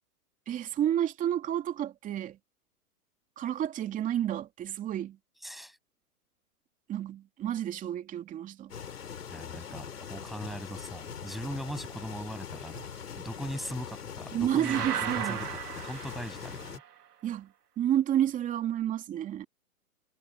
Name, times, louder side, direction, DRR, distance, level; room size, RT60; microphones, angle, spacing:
voice 1, 0.5-2.4 3.4-5.2 6.9-8.7 14.3-15.4 17.2-17.5 17.8-19.5, right 11 dB, 15° right, 2.7 m, -30 dB
voice 2, 5.4-5.8 9.3-12.9 13.1-15.5 15.7-16.8, equal, ahead, 7.9 m, -40 dB
sound 1, 8.7-16.8, left 7 dB, 80° left, 4.0 m, -42 dB
sound 2, 14.6-16.9, right 8 dB, 80° right, 1.6 m, -35 dB
hypercardioid pair, 145°, 45 cm